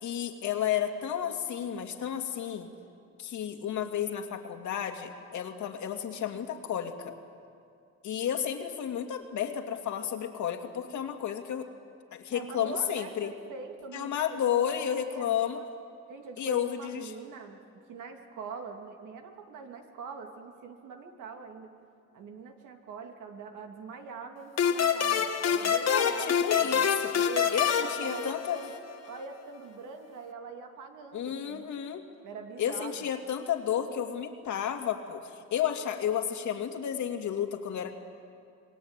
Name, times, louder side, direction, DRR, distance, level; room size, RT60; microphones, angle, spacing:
voice 1, 0.0-2.7 3.2-7.1 8.0-11.7 12.1-13.3 13.9-15.6 16.4-17.1 25.9-27.1 27.5-28.6 31.1-32.0 32.6-37.9, left 9 dB, 70° left, 4 dB, 2.5 m, -32 dB
voice 2, 12.3-15.6 16.1-17.6 17.9-21.7 22.1-28.7 29.1-31.7 32.2-33.1, right 5 dB, 80° right, 4 dB, 2.9 m, -43 dB
sound 1, 24.6-28.9, left 7 dB, 55° left, 1.7 m, -27 dB
27.0 x 20.5 x 9.1 m, 2.3 s
cardioid pair, 90°, 30 cm